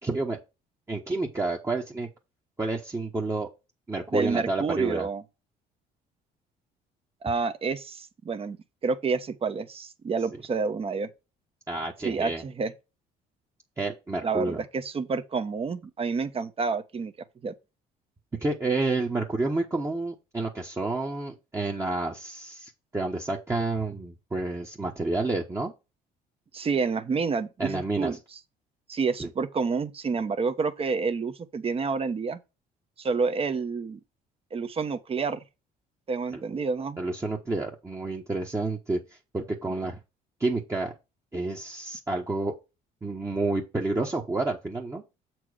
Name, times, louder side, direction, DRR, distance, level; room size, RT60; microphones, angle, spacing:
voice 1, 0.0-0.4 0.9-2.1 2.6-3.5 3.9-5.1 11.7-12.4 13.8-14.6 18.4-25.7 27.6-28.2 29.2-29.3 36.3-36.4 37.0-39.0 39.3-40.0 40.4-40.9 41.3-42.5 43.0-45.0, right 2 dB, 15° right, 1.3 m, -29 dB
voice 2, 4.1-5.2 7.2-8.6 8.8-11.1 12.0-12.7 14.2-17.1 17.4-17.5 26.5-28.2 28.9-32.4 33.0-34.0 34.5-35.4 36.1-37.0, right 4 dB, 35° right, 1.2 m, -29 dB
7.6 x 4.6 x 4.9 m
cardioid pair, 110°, 17 cm